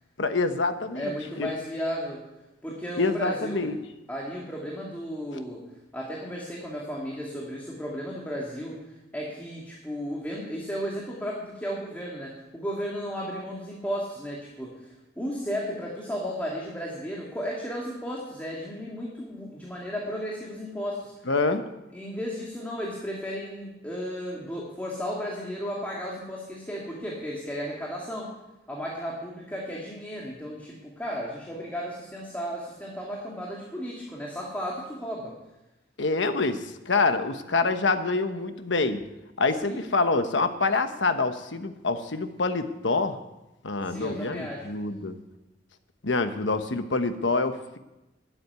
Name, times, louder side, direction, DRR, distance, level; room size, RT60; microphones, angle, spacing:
voice 1, 0.2-1.5 3.0-3.8 21.3-21.6 36.0-39.0 39.4-43.2 43.6-45.2 46.0-47.8, left 3 dB, 85° left, 8 dB, 1.1 m, -26 dB
voice 2, 0.9-2.2 2.6-3.7 4.1-5.6 5.9-8.8 9.1-21.1 21.9-28.3 28.7-35.3 39.6-39.9 43.8-44.7, equal, 10° left, -3 dB, 2.3 m, -34 dB
13.0 x 8.7 x 9.5 m, 0.98 s
head